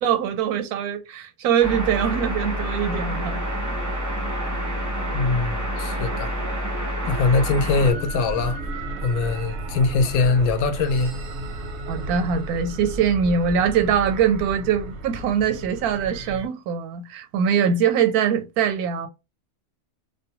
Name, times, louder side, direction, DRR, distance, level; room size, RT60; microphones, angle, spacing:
voice 1, 0.0-3.5 11.9-19.1, right 7 dB, 90° right, 1.1 m, -22 dB
sound 1, 1.6-7.9, equal, 20° right, 0.5 m, -28 dB
voice 2, 5.1-6.3 7.1-8.6 9.0-11.1, left 4 dB, 75° left, 1.0 m, -22 dB
sound 2, 7.7-16.5, right 1 dB, 65° right, 0.7 m, -33 dB
2.5 x 2.1 x 2.8 m
omnidirectional pair, 1.5 m